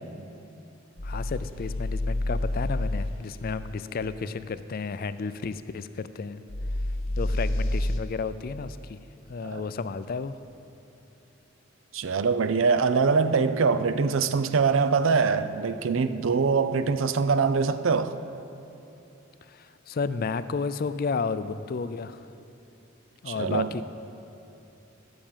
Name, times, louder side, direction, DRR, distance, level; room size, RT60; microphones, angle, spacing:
sound 1, 1.0-3.1 6.5-8.0, left 1 dB, 80° left, 1.0 m, -28 dB
voice 1, 1.0-6.4 7.1-9.0 9.3-10.4 19.5-22.3 23.2-23.8, left 4 dB, 45° left, 0.4 m, -32 dB
voice 2, 11.9-18.1 23.3-23.8, right 5 dB, 70° right, 0.5 m, -23 dB
15.0 x 6.4 x 7.3 m
head